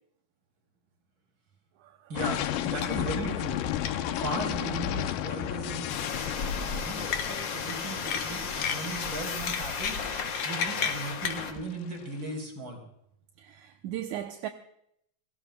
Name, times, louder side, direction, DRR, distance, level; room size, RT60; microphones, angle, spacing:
voice 1, 2.1-3.6 4.1-6.1 6.8-10.0 10.4-12.8, right 2 dB, 35° right, 4.7 m, -37 dB
sound 1, 2.2-12.0, left 11 dB, 90° left, 2.5 m, -34 dB
sound 2, 2.8-3.0 3.3-3.4 3.9-4.0 5.2-5.4 7.1-7.8 8.1-9.0 9.5-11.4, left 7 dB, 70° left, 2.5 m, -32 dB
sound 3, 5.9-11.5, left 5 dB, 50° left, 1.4 m, -34 dB
voice 2, 13.4-14.5, right 11 dB, 75° right, 2.0 m, -37 dB
29.0 x 17.5 x 2.3 m
omnidirectional pair, 3.9 m